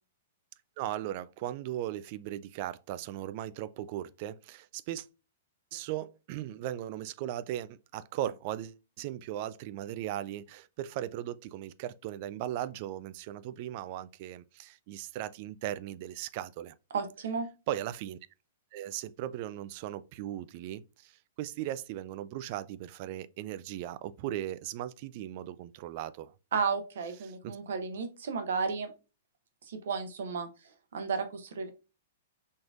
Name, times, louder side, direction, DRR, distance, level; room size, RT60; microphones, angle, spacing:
voice 1, 0.8-5.1 5.7-16.7 17.7-18.2 18.7-26.3 27.4-27.6, right 12 dB, 50° right, 0.3 m, -38 dB
voice 2, 16.9-17.5 26.5-28.9 29.7-30.5 30.9-31.7, right 5 dB, 70° right, 0.9 m, -33 dB
4.3 x 3.2 x 2.5 m
hypercardioid pair, 115°, 0 cm